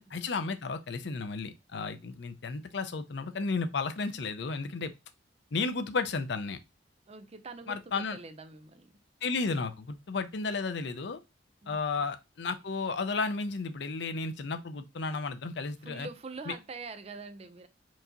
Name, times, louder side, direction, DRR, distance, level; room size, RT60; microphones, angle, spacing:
voice 1, 0.0-4.9 5.5-6.6 7.7-8.2 9.2-11.2 11.7-16.1, left 4 dB, 65° left, 0.6 m, -33 dB
voice 2, 7.1-8.9 11.6-12.1 15.8-17.7, right 3 dB, 35° right, 0.5 m, -44 dB
4.6 x 2.8 x 3.8 m
head